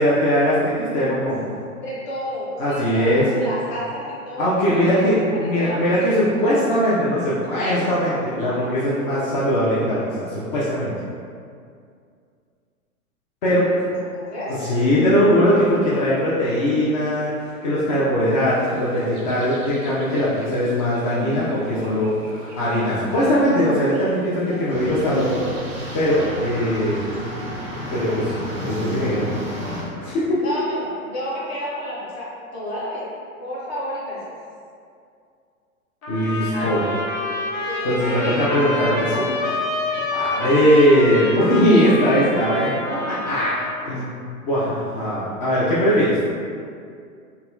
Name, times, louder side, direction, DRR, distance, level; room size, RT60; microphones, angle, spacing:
voice 1, 0.0-1.5 2.6-3.3 4.4-10.9 13.4-13.9 14.5-25.4 25.9-27.0 27.9-29.3 30.0-30.4 36.1-36.8 37.8-39.3 40.1-42.7 43.1-44.1 44.4-46.2, equal, 30° left, -9 dB, 0.5 m, -20 dB
voice 2, 1.8-5.8 13.5-13.8 14.1-14.7 30.4-33.1 33.4-34.3 36.5-37.0 37.6-39.3, equal, 50° left, -7 dB, 1.2 m, -31 dB
sound 1, 18.3-29.9, right 4 dB, 40° right, 0.5 m, -40 dB
sound 2, 24.7-29.8, left 1 dB, 5° right, 1.0 m, -32 dB
sound 3, 36.0-43.8, left 2 dB, 75° left, 0.8 m, -28 dB
3.9 x 2.2 x 2.7 m, 2.3 s
hypercardioid pair, 130°, 43 cm